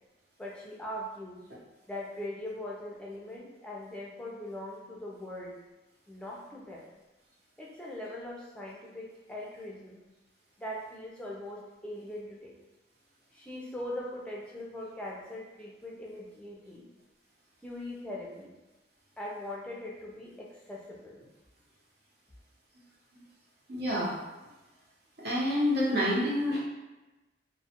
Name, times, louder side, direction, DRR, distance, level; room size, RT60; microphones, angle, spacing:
voice 1, 0.4-1.4 1.9-5.6 6.1-6.8 7.6-10.0 10.6-12.6 13.3-16.9 17.6-18.5 19.2-21.2, left 1 dB, 5° left, -4 dB, 0.4 m, -41 dB
voice 2, 23.7-24.2 25.2-26.6, left 1 dB, 60° right, -5 dB, 0.7 m, -28 dB
2.3 x 2.1 x 2.8 m, 1.1 s
head